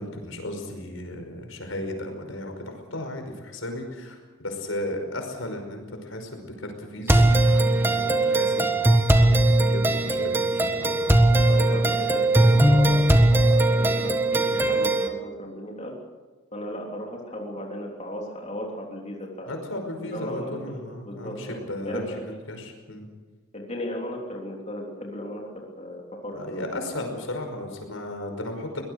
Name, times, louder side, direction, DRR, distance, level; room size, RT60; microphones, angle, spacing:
voice 1, 0.0-8.7 9.3-12.1 19.5-23.1 26.3-28.8, left 1 dB, 80° left, 5 dB, 5.4 m, -35 dB
sound 1, 7.1-15.1, right 1 dB, 10° right, 1.6 m, -19 dB
voice 2, 11.5-15.9 16.5-19.5 20.0-22.3 23.5-26.7, equal, 35° left, -1 dB, 3.4 m, -36 dB
23.5 x 19.5 x 6.6 m, 1.3 s
head